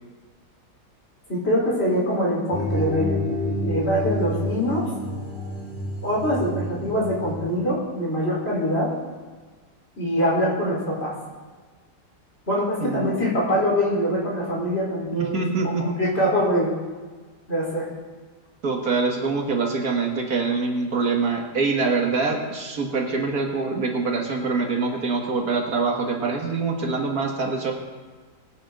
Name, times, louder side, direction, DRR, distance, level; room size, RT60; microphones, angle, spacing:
voice 1, 1.3-3.2 3.6-4.9 6.0-8.9 10.0-11.1 12.5-15.3 15.6-16.7 17.5-17.9, equal, 35° left, -5 dB, 4.5 m, -24 dB
sound 1, 2.5-7.5, left 1 dB, 5° left, 4.2 m, -28 dB
voice 2, 12.8-13.2 15.1-15.9 18.6-27.7, right 4 dB, 60° right, 1 dB, 2.1 m, -24 dB
22.0 x 9.0 x 3.9 m, 1.4 s
omnidirectional pair, 1.8 m